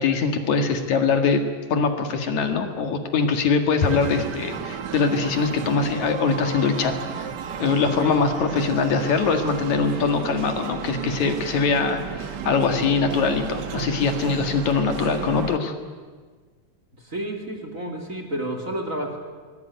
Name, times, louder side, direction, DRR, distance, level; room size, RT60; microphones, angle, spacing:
voice 1, 0.0-1.4 1.7-7.3 7.6-15.7, left 5 dB, 70° left, 6 dB, 3.2 m, -22 dB
sound 1, 3.8-15.6, right 8 dB, 65° right, 1.0 m, -33 dB
voice 2, 17.0-19.2, right 1 dB, 25° right, 2 dB, 3.0 m, -30 dB
23.5 x 20.5 x 9.3 m, 1.5 s
omnidirectional pair, 3.5 m